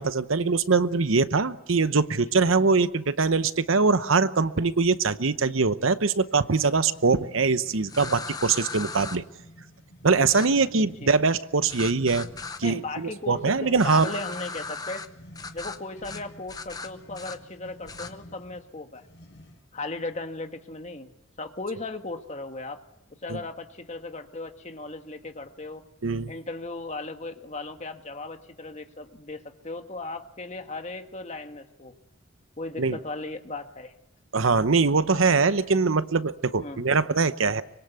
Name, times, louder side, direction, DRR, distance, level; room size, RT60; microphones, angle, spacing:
voice 1, 0.0-9.2 10.0-12.3 12.6-14.1 23.3-23.4 26.0-26.3 32.8-33.0 34.3-37.6, right 4 dB, 85° right, 13 dB, 0.9 m, -23 dB
sound 1, 6.0-19.8, equal, 60° left, 5.4 m, -50 dB
Gas Spray, 7.9-9.2 10.3-10.5 11.7-12.6 13.8-15.1 15.4-15.8 16.0-16.2 16.5-17.4 17.9-18.1, left 4 dB, 20° left, 0.9 m, -37 dB
voice 2, 10.7-11.1 12.6-15.0 15.5-19.1 19.7-21.1 21.4-22.8 23.2-25.8 26.3-31.9 32.6-33.9 36.6-36.8, left 2 dB, 35° left, 6 dB, 1.6 m, -36 dB
25.0 x 22.0 x 8.3 m, 0.88 s
head